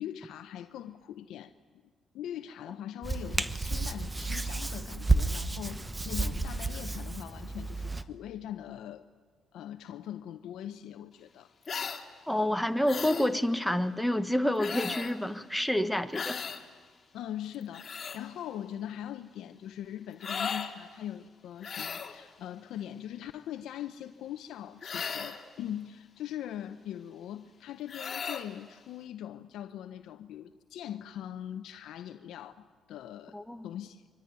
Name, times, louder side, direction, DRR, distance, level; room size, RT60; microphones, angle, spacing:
voice 1, 0.0-1.5 2.1-9.0 9.5-11.5 17.1-34.0, left 11 dB, 80° left, 9 dB, 0.8 m, -41 dB
Hands, 3.0-8.0, right 3 dB, 15° right, 1.2 m, -31 dB
sound 1, 11.6-12.0 12.9-13.3 14.6-15.2 16.1-16.6 17.5-18.2 20.2-20.7 21.6-22.2 24.8-25.4 27.9-28.5, left 6 dB, 40° left, 2.3 m, -36 dB
voice 2, 12.3-16.4 33.3-33.7, left 1 dB, ahead, 9 dB, 1.4 m, -28 dB
25.5 x 23.5 x 9.6 m, 1.5 s
cardioid pair, 90°, 0 cm